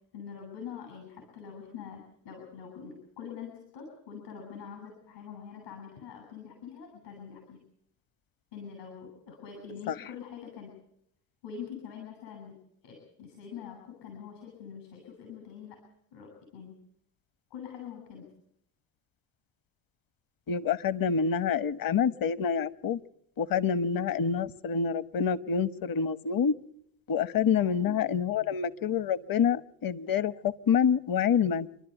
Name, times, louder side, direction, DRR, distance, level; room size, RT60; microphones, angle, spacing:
voice 1, 0.1-7.6 8.5-10.7 11.4-12.6 12.8-15.8 16.1-16.8 17.5-18.3 27.4-28.0, left 7 dB, 75° left, 3 dB, 7.2 m, -44 dB
voice 2, 20.5-23.0 23.4-26.5 27.1-31.7, left 7 dB, 45° left, 15 dB, 1.2 m, -27 dB
28.5 x 12.0 x 8.1 m, 0.73 s
hypercardioid pair, 55°, 50 cm